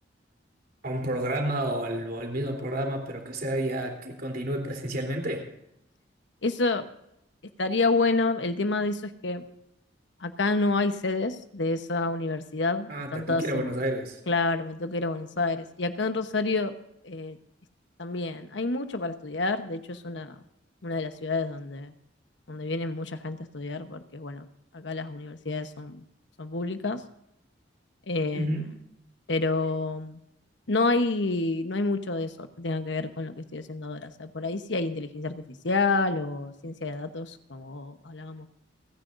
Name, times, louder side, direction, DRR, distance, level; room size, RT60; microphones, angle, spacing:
voice 1, 0.8-5.4 12.9-14.2 28.3-28.7, right 1 dB, 55° right, 3 dB, 3.5 m, -30 dB
voice 2, 6.4-6.8 7.6-9.4 10.2-13.8 14.3-16.7 17.0-17.4 18.0-20.4 20.8-21.9 22.5-24.5 24.7-26.0 26.4-27.0 28.1-28.6 29.3-30.2 30.7-38.6, left 3 dB, 80° left, 8 dB, 1.1 m, -29 dB
29.5 x 10.0 x 2.6 m, 0.81 s
head